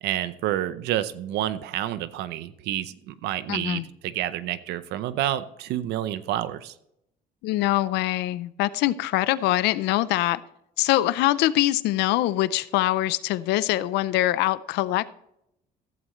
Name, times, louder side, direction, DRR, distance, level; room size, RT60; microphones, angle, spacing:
voice 1, 0.0-6.7, right 13 dB, 85° right, 0.6 m, -29 dB
voice 2, 3.5-3.8 7.4-10.4 10.8-15.1, left 16 dB, 85° left, 0.5 m, -23 dB
15.0 x 7.7 x 3.1 m
cardioid pair, 110°, 17 cm